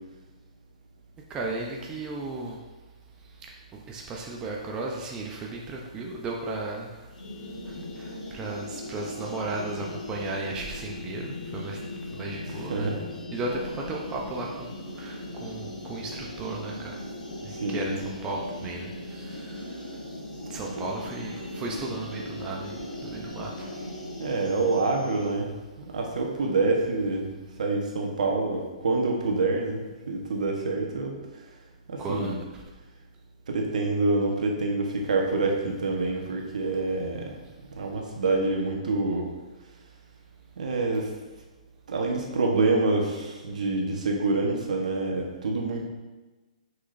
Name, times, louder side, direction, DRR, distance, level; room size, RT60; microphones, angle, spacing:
voice 1, 1.3-2.6 3.7-7.0 7.7-11.8 12.1-12.9 13.3-16.9 17.4-19.8 20.5-23.9 32.0-32.3, right 2 dB, 20° right, -1 dB, 0.7 m, -35 dB
sound 1, 7.1-25.4, left 1 dB, 80° left, 1.3 m, -38 dB
voice 2, 12.5-13.0 17.6-18.0 20.4-20.6 24.2-25.5 25.9-27.3 27.6-31.1 31.9-32.4 33.5-37.4 37.7-39.3 40.6-41.1 41.9-45.9, right 3 dB, 65° right, 0 dB, 1.3 m, -26 dB
6.1 x 5.9 x 2.7 m, 1.2 s
hypercardioid pair, 125°, 4 cm